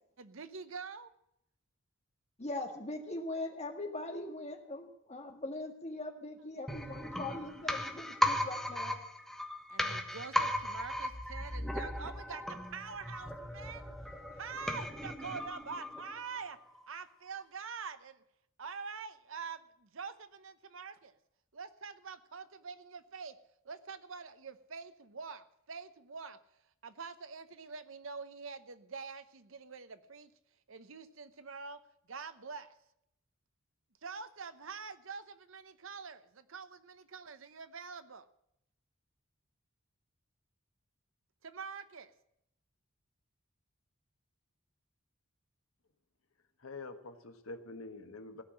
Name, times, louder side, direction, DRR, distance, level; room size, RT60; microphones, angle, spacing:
voice 1, 0.2-1.1 8.2-8.3 9.7-13.9 14.3-16.6 16.9-18.2 18.6-21.1 21.5-23.4 23.6-26.4 26.8-30.3 30.7-31.8 32.1-32.7 34.0-38.3 41.4-42.1, right 5 dB, 70° right, 12 dB, 0.9 m, -45 dB
voice 2, 2.4-9.0, left 2 dB, 30° left, 3 dB, 1.8 m, -41 dB
sound 1, 6.7-16.4 16.7-16.8, left 1 dB, ahead, 1.3 m, -36 dB
voice 3, 46.6-48.4, left 3 dB, 85° left, 7 dB, 1.4 m, -46 dB
16.5 x 5.8 x 9.9 m, 0.79 s
head